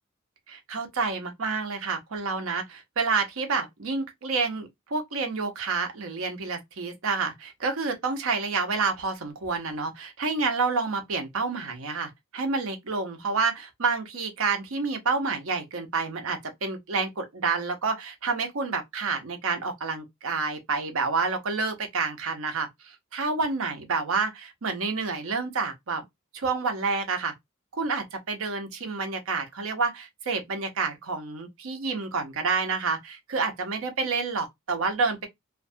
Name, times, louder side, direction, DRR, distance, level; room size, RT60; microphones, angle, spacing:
voice 1, 0.5-26.0 26.3-27.3 27.7-35.3, right 4 dB, 75° right, 0.7 m, -29 dB
2.5 x 2.3 x 2.5 m
head